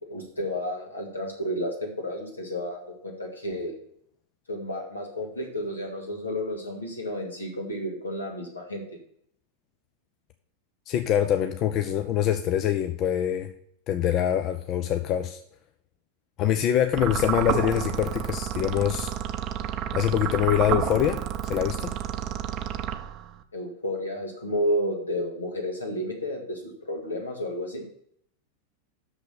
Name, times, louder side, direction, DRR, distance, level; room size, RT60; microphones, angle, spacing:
voice 1, 0.0-3.7 4.5-8.8 23.5-27.8, equal, 80° left, 1 dB, 2.3 m, -31 dB
voice 2, 10.9-13.5 13.9-15.4 16.4-19.1 19.9-21.2 21.5-21.9, left 10 dB, 35° left, 7 dB, 0.6 m, -24 dB
sound 1, 16.9-23.4, right 10 dB, 35° right, 0.6 m, -30 dB
6.6 x 6.0 x 6.7 m, 0.69 s
figure-of-eight pair, 90°, 0 cm